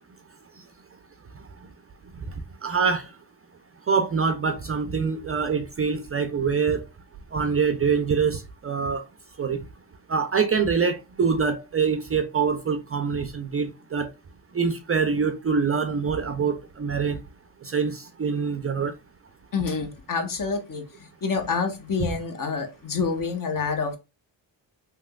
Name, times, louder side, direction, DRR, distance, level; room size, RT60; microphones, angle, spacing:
voice 1, 2.6-3.1 3.9-6.8 7.3-9.0 9.4-9.6 10.1-14.1 14.5-17.2 17.6-18.9 22.0-22.1, right 5 dB, 30° right, 0.4 m, -25 dB
voice 2, 19.5-24.0, left 5 dB, 45° left, 1.0 m, -28 dB
3.3 x 2.9 x 2.2 m
cardioid pair, 70°, 48 cm